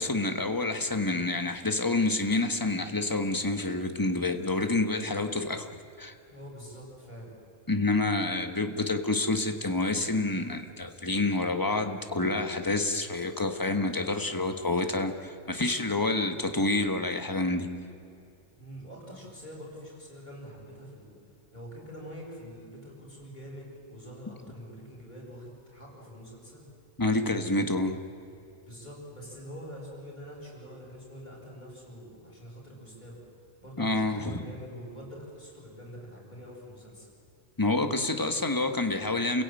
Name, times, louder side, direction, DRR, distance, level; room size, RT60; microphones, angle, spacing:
voice 1, 0.0-5.7 6.0-6.1 7.7-17.7 27.0-27.9 33.8-34.4 37.6-39.4, left 2 dB, 15° left, 6 dB, 1.5 m, -28 dB
voice 2, 6.3-7.3 18.6-21.2 21.5-26.7 28.7-33.2 33.6-37.1, equal, 35° left, -3 dB, 7.6 m, -45 dB
29.5 x 16.5 x 9.2 m, 2.6 s
omnidirectional pair, 1.4 m